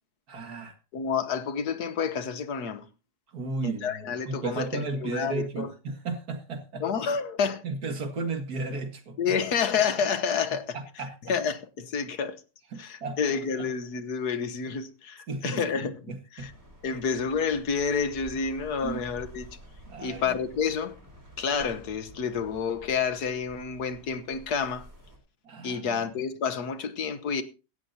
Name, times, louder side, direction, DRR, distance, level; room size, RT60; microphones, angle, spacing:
voice 1, 0.3-0.8 3.3-6.8 7.6-9.2 11.0-11.1 12.7-13.4 15.3-16.5 16.9-17.0 18.8-19.0 19.9-20.4 25.4-25.9, right 3 dB, 75° right, 2.5 m, -34 dB
voice 2, 0.9-2.9 3.6-5.7 6.8-7.6 9.2-10.8 11.2-12.4 12.8-16.5 16.8-19.5 20.0-21.0 21.4-24.9 25.6-27.4, left 6 dB, 85° left, 1.7 m, -29 dB
sound 1, 16.4-25.2, equal, 40° right, 3.9 m, -50 dB
17.0 x 12.5 x 2.9 m
omnidirectional pair, 1.6 m